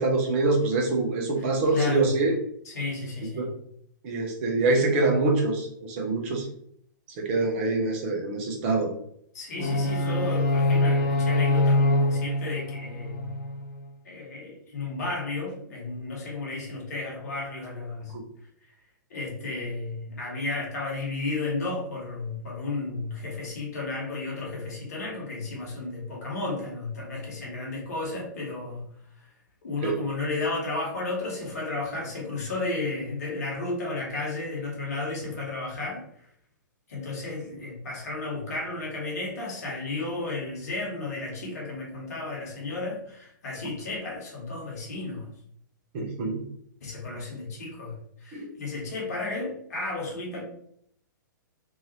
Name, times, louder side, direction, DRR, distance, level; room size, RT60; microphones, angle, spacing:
voice 1, 0.0-2.3 3.4-3.5 4.0-6.5 7.2-8.9 18.1-18.2 29.8-29.9 45.9-46.4 48.3-48.5, right 3 dB, 35° right, 1 dB, 0.8 m, -25 dB
voice 2, 1.4-2.1 2.6-3.5 9.3-13.3 14.0-18.1 19.1-28.9 29.2-29.3 29.6-36.0 36.9-45.3 46.8-50.4, left 3 dB, 55° left, -3 dB, 1.2 m, -33 dB
sound 1, 9.6-13.6, left 1 dB, 35° left, 0.6 m, -24 dB
2.9 x 2.7 x 2.7 m, 0.70 s
figure-of-eight pair, 110°, 11 cm